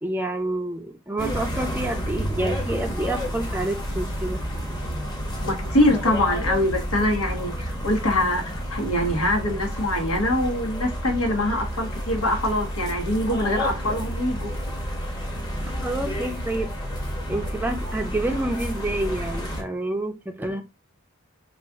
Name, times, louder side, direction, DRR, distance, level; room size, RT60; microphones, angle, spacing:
voice 1, 0.0-4.4 15.7-16.7 17.3-20.6, right 1 dB, 10° right, 0.5 m, -28 dB
sound 1, 1.2-19.6, equal, 20° left, 1.0 m, -30 dB
voice 2, 5.4-14.5, left 1 dB, 85° left, 1.3 m, -24 dB
4.3 x 2.4 x 3.5 m
head